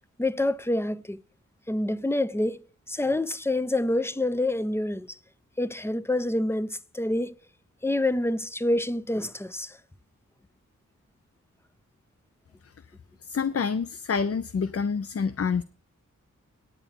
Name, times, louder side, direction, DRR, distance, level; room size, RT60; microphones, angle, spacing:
voice 1, 0.2-1.2 1.7-2.6 2.9-5.2 5.6-7.3 7.8-9.8, left 1 dB, 10° left, 0.7 m, -27 dB
voice 2, 13.2-15.6, left 5 dB, 50° left, 0.6 m, -27 dB
9.5 x 9.0 x 5.4 m
cardioid pair, 65°, 32 cm